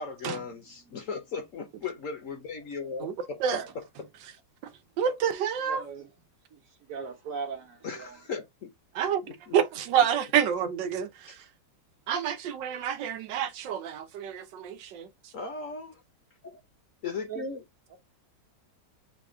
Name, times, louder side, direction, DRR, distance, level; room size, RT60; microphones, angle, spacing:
voice 1, 0.0-4.1 7.8-8.7 9.2-9.6 11.3-11.4 15.3-16.0 16.4-16.6 17.0-17.6, left 5 dB, 55° left, 1.0 m, -37 dB
voice 2, 5.0-5.8 9.0-9.2 9.5-11.3 12.1-15.1, right 8 dB, 80° right, 1.3 m, -28 dB
voice 3, 5.7-6.1 6.5-6.6 6.9-8.2 17.3-17.5, right 5 dB, 55° right, 1.2 m, -38 dB
4.2 x 2.4 x 4.7 m
omnidirectional pair, 1.9 m